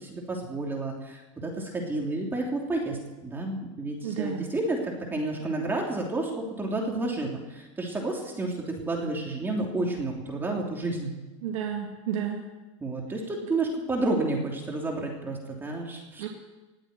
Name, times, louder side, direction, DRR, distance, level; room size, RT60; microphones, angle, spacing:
voice 1, 0.0-11.1 12.8-16.3, right 2 dB, 15° right, 0 dB, 3.2 m, -30 dB
voice 2, 4.0-4.5 11.4-12.4 16.2-16.3, right 9 dB, 80° right, 1 dB, 2.3 m, -31 dB
19.5 x 8.1 x 9.1 m, 1.1 s
supercardioid pair, 135°, 16 cm